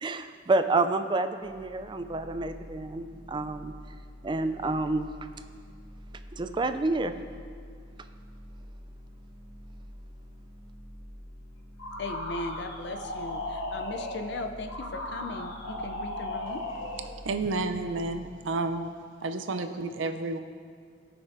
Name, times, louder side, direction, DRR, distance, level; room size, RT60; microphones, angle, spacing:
voice 1, 0.0-3.7 4.2-5.1 6.4-7.1, right 2 dB, 25° right, 9 dB, 0.3 m, -28 dB
sound 1, 1.4-18.2, equal, ahead, 0.8 m, -47 dB
sound 2, 11.8-17.2, left 1 dB, 85° left, 0.9 m, -36 dB
voice 2, 12.0-16.6, left 2 dB, 60° left, 5 dB, 0.6 m, -38 dB
voice 3, 17.2-18.9 19.2-20.4, right 3 dB, 75° right, 8 dB, 0.5 m, -30 dB
17.0 x 6.0 x 2.7 m, 2.1 s
head